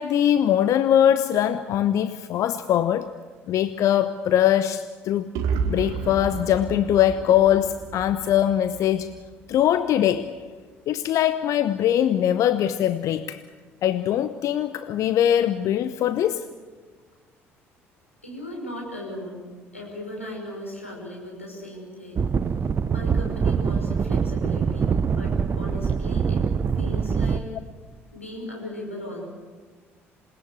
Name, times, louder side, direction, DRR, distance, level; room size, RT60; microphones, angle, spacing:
voice 1, 0.0-3.1 3.5-5.3 5.7-9.2 9.5-10.3 10.9-13.4 13.8-16.5, left 10 dB, 50° left, 13 dB, 0.9 m, -22 dB
sound 1, 5.3-9.2, right 5 dB, 60° right, 2.0 m, -31 dB
voice 2, 18.2-19.4 19.7-22.3 22.9-26.4 26.7-27.5 28.1-29.2, left 1 dB, 85° left, -1 dB, 5.7 m, -37 dB
sound 2, 22.2-27.4, right 6 dB, 35° right, 1.0 m, -24 dB
27.5 x 20.0 x 8.1 m, 1.5 s
figure-of-eight pair, 55°, 7 cm